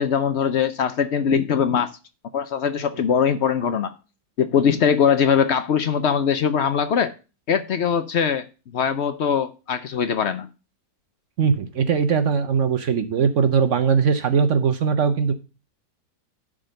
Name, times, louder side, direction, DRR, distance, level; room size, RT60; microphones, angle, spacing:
voice 1, 0.0-1.9 2.3-3.9 4.4-7.1 7.5-8.4 8.7-10.5, left 7 dB, 60° left, 0.7 m, -21 dB
voice 2, 11.4-15.3, right 6 dB, 55° right, 0.9 m, -20 dB
11.0 x 3.9 x 6.4 m
omnidirectional pair, 1.8 m